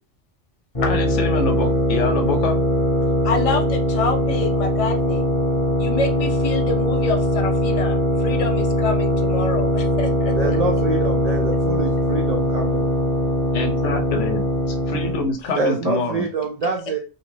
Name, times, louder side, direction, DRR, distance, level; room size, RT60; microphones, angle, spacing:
voice 1, 0.8-2.6 13.5-14.4 14.7-16.2, left 3 dB, 85° left, 5 dB, 1.1 m, -25 dB
sound 1, 0.8-15.3, left 1 dB, 30° left, 0.8 m, -21 dB
voice 2, 3.2-5.2 5.8-10.6, left 3 dB, 45° left, 4 dB, 0.4 m, -27 dB
voice 3, 10.4-12.9 15.5-17.0, right 3 dB, 65° right, 2 dB, 0.4 m, -25 dB
2.7 x 2.4 x 3.1 m, 0.31 s
omnidirectional pair, 1.2 m